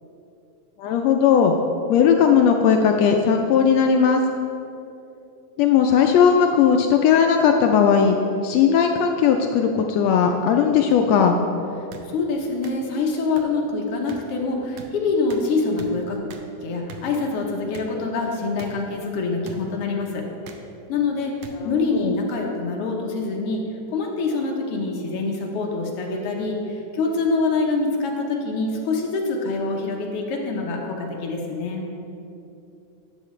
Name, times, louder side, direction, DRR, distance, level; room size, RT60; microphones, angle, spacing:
voice 1, 0.8-1.5 1.9-4.2 5.6-8.2 8.4-11.4 21.9-22.1, left 7 dB, 80° left, 4 dB, 1.5 m, -17 dB
sound 1, 10.9-11.0 11.9-12.0 12.6-12.7 13.4-13.5 14.1-14.2 14.8-14.9 15.3-15.4 15.8-15.9 16.3-16.4 16.9-17.0 17.7-17.9 18.6-18.7 19.4-19.6 20.4-20.6 21.4-21.5 22.4-22.5, right 6 dB, 80° right, 1.2 m, -40 dB
voice 2, 12.1-16.2 16.6-20.3 20.9-31.9, left 3 dB, 65° left, 1 dB, 1.5 m, -25 dB
11.5 x 8.2 x 3.2 m, 2.8 s
omnidirectional pair, 3.4 m